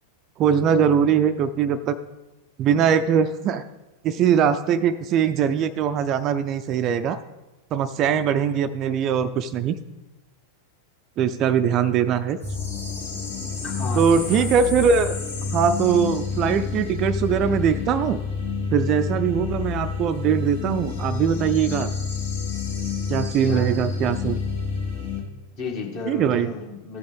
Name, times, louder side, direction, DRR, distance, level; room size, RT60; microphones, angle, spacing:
voice 1, 0.4-2.0 2.6-3.6 4.0-7.2 7.7-9.8 11.2-12.4 13.9-15.2 15.5-18.2 18.7-21.9 23.1-24.4 26.1-26.5, right 7 dB, 35° right, 11 dB, 0.4 m, -21 dB
sound 1, 12.4-25.2, left 5 dB, 80° left, 2.6 m, -28 dB
voice 2, 13.6-14.5 23.4-23.7 25.5-27.0, left 4 dB, 40° left, 0 dB, 1.7 m, -34 dB
14.5 x 5.1 x 3.5 m, 1.0 s
figure-of-eight pair, 90°, 0 cm